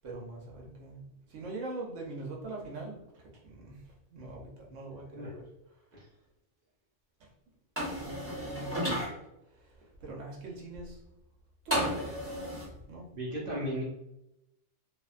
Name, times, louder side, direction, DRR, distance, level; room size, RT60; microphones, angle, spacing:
voice 1, 0.0-1.0 1.3-3.8 4.1-5.4 7.2-7.3 7.9-9.2 9.5-11.0 11.6-12.2 12.9-13.1, right 2 dB, 75° right, -1 dB, 1.1 m, -42 dB
sound 1, 7.8-9.1 11.7-12.7, equal, 10° right, 0.8 m, -32 dB
voice 2, 13.1-13.8, equal, 50° right, -5 dB, 0.8 m, -35 dB
2.8 x 2.1 x 2.4 m, 0.86 s
omnidirectional pair, 1.3 m